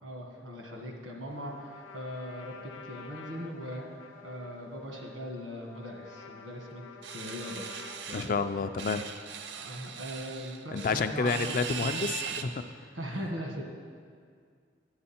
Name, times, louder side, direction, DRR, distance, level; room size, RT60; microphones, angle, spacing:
voice 1, 0.0-7.7 8.1-8.6 9.5-11.9 12.7-13.6, equal, 90° right, 1 dB, 1.6 m, -40 dB
Trumpet, 1.3-9.4, left 4 dB, 85° left, 0.7 m, -50 dB
sound 1, 7.0-8.3 8.8-12.4, right 7 dB, 60° right, 0.5 m, -39 dB
voice 2, 8.1-9.1 10.7-12.6, left 4 dB, 45° left, 10 dB, 0.3 m, -30 dB
9.6 x 8.5 x 4.3 m, 2.1 s
head